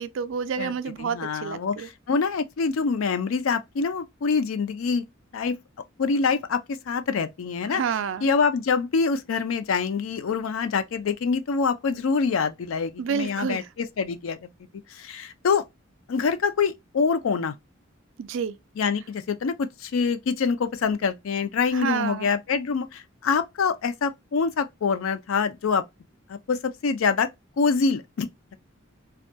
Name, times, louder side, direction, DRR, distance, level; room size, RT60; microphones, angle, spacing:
voice 1, 0.0-1.9 7.7-8.3 13.0-13.6 18.2-18.6 21.7-22.3, right 6 dB, 65° right, 0.3 m, -29 dB
voice 2, 1.0-5.0 5.3-5.6 6.0-7.8 8.2-14.5 14.9-15.7 16.1-17.5 18.8-25.8 26.3-27.3 27.6-28.5, left 5 dB, 80° left, 0.4 m, -25 dB
2.3 x 2.2 x 2.6 m
head